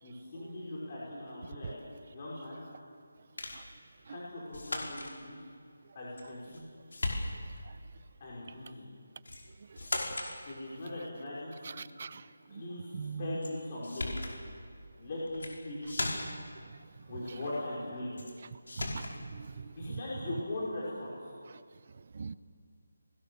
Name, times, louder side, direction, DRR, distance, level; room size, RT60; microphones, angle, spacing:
voice 1, 0.0-1.7 2.1-2.6 4.1-5.4 5.9-6.7 8.2-8.8 10.5-11.9 12.5-12.9 13.2-14.1 15.0-16.1 17.1-18.1 19.7-21.1, left 1 dB, 25° left, -7 dB, 5.1 m, -40 dB
sound 1, 3.4-3.7 4.5-5.1 6.2-6.6 6.9-7.6 9.2-9.5 9.8-10.3 13.4-13.5 13.8-14.4 15.3-15.6 15.9-16.5 18.2-18.3 18.7-19.2, left 2 dB, 70° left, 5.2 m, -36 dB
voice 2, 11.8-12.2 12.5-12.6 12.9-13.4 18.8-19.0 19.3-19.7 22.1-22.4, right 6 dB, 35° right, 16 dB, 0.6 m, -40 dB
29.0 x 20.5 x 7.0 m, 2.2 s
figure-of-eight pair, 175°, 0 cm